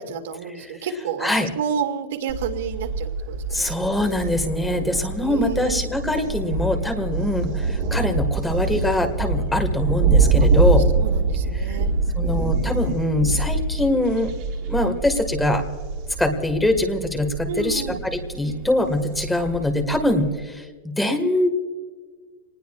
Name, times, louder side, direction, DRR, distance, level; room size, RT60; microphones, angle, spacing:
voice 1, 0.1-3.7 5.2-5.8 10.4-10.5 11.0-11.9 17.5-18.0, right 7 dB, 80° right, 5 dB, 2.2 m, -30 dB
Thunder, 2.3-20.3, right 3 dB, 40° right, 1.7 m, -25 dB
voice 2, 3.5-10.9 11.5-11.8 12.2-14.3 14.7-15.6 16.2-21.5, left 1 dB, 5° left, 4 dB, 1.6 m, -23 dB
27.5 x 20.0 x 2.4 m, 1.5 s
supercardioid pair, 175°, 0 cm